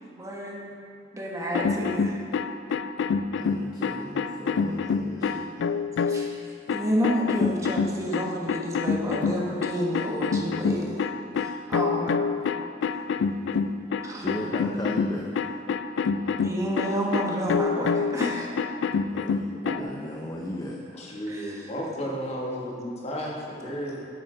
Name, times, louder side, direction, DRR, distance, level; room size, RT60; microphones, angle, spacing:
voice 1, 0.0-0.6 1.1-2.2 6.1-11.0 11.4-12.2 14.0-14.5 16.4-18.5 19.7-19.8 21.3-21.7, equal, 20° right, -2 dB, 1.2 m, -30 dB
sound 1, 1.4-6.3 6.7-19.8, left 5 dB, 80° left, 0.3 m, -27 dB
voice 2, 3.4-5.7 14.1-15.5 19.1-21.1, left 1 dB, 20° left, -1 dB, 0.6 m, -36 dB
voice 3, 21.0-24.0, equal, 35° left, -3 dB, 1.5 m, -33 dB
10.0 x 8.2 x 3.8 m, 2.3 s
head